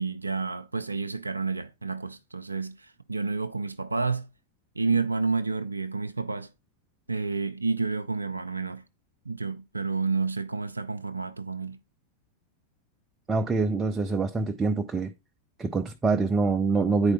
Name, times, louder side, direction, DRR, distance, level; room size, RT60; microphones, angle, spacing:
voice 1, 0.0-4.3 4.8-6.5 7.1-8.8 9.3-11.8, right 4 dB, 80° right, 0.4 m, -30 dB
voice 2, 13.3-15.1 15.6-17.1, right 4 dB, 15° right, 0.5 m, -25 dB
9.6 x 4.6 x 3.7 m
figure-of-eight pair, 90°, 0 cm